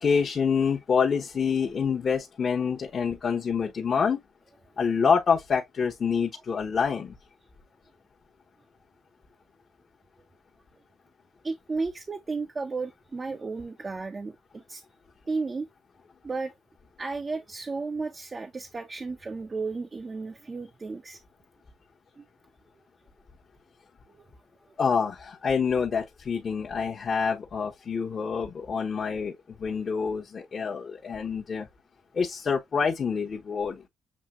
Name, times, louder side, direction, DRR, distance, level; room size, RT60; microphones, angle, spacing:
voice 1, 0.0-4.2 4.8-7.2 24.8-31.7 32.1-33.8, left 6 dB, 45° left, 1.0 m, -27 dB
voice 2, 11.4-14.8 15.3-15.7 16.2-16.5 17.0-21.2 22.2-22.3 24.1-24.2, right 4 dB, 30° right, 0.6 m, -33 dB
7.2 x 2.7 x 2.4 m
cardioid pair, 90°, 0 cm